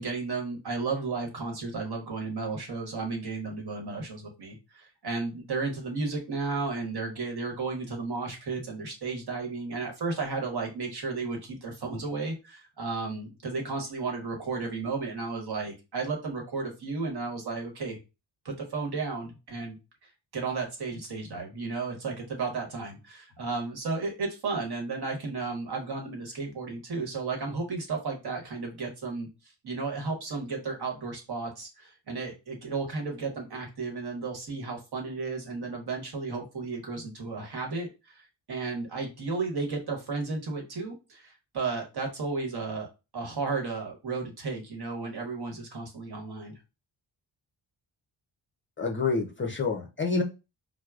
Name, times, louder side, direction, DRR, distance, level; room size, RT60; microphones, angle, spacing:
voice 1, 0.0-18.0 18.4-19.8 20.3-29.3 29.6-42.9 43.1-46.5, right 4 dB, 55° right, 1 dB, 1.1 m, -33 dB
voice 2, 48.8-50.2, left 4 dB, 25° left, 2 dB, 0.5 m, -28 dB
4.5 x 2.0 x 2.3 m, 0.28 s
cardioid pair, 90°, 46 cm